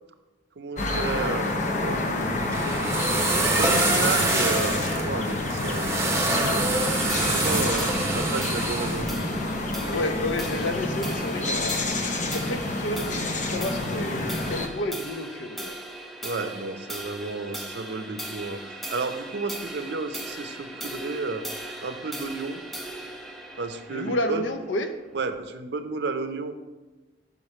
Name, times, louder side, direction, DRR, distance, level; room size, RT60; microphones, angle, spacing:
voice 1, 0.6-1.5 1.8-3.0 3.5-9.2 16.2-21.4 21.8-22.6 23.6-24.4 25.1-26.5, right 3 dB, 65° right, 9 dB, 0.5 m, -32 dB
sound 1, 0.8-14.7, left 2 dB, 40° left, 0.7 m, -28 dB
sound 2, 2.2-9.0, right 2 dB, 15° right, 0.8 m, -26 dB
sound 3, 6.8-25.4, right 1 dB, ahead, 0.5 m, -39 dB
voice 2, 9.9-11.9 12.2-13.0 13.5-15.8 23.9-25.0, left 1 dB, 90° left, 7 dB, 0.6 m, -30 dB
6.3 x 4.9 x 4.2 m, 1.2 s
head